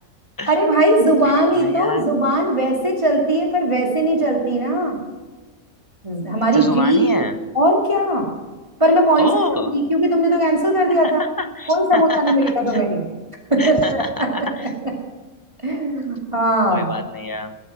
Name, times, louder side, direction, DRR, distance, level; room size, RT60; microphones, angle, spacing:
voice 1, 0.5-5.0 6.0-7.2 7.5-8.3 8.8-11.2 11.7-13.0 13.5-14.0 15.6-16.9, right 1 dB, 20° right, -1 dB, 2.4 m, -18 dB
voice 2, 1.2-2.0 6.5-7.3 9.2-9.7 11.4-12.8 13.6-14.7 16.7-17.6, left 2 dB, 15° left, 7 dB, 1.0 m, -27 dB
20.5 x 8.6 x 6.0 m, 1.3 s
omnidirectional pair, 1.4 m